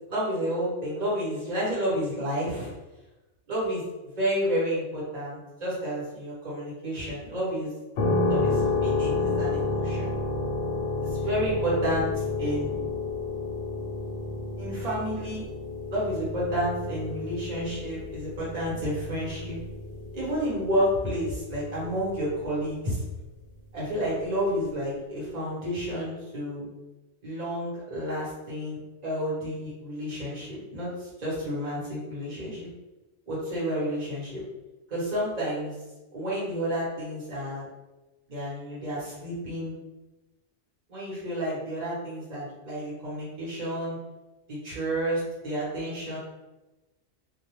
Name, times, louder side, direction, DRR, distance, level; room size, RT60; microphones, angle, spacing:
voice 1, 0.1-2.7 3.5-3.8 4.2-7.7 8.3-10.1 11.0-12.7 14.6-15.4 15.9-19.6 20.1-23.0 23.7-26.7 27.2-32.7 33.3-34.4 34.9-35.8 36.1-37.6 38.3-39.7 40.9-44.0 44.5-46.2, equal, 40° right, -7 dB, 1.0 m, -30 dB
sound 1, 8.0-22.6, left 3 dB, 75° left, 0.8 m, -30 dB
2.3 x 2.1 x 3.0 m, 1.1 s
omnidirectional pair, 1.1 m